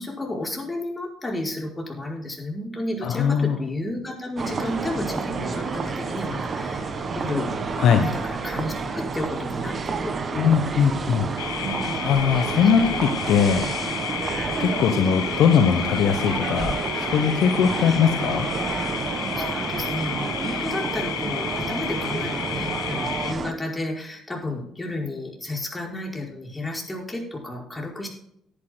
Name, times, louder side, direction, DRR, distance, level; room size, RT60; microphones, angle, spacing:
voice 1, 0.0-6.9 7.1-10.6 11.6-12.0 12.6-12.7 19.3-28.1, left 1 dB, 15° left, -2 dB, 5.1 m, -32 dB
voice 2, 3.0-3.6 7.8-8.1 10.3-11.3 12.0-13.7 14.6-18.5, left 7 dB, 60° left, 8 dB, 0.9 m, -20 dB
sound 1, 4.4-23.5, right 4 dB, 40° right, 1.4 m, -29 dB
sound 2, 11.4-23.3, left 13 dB, 80° left, 0.5 m, -32 dB
18.0 x 10.0 x 2.2 m, 0.75 s
hypercardioid pair, 50°, 0 cm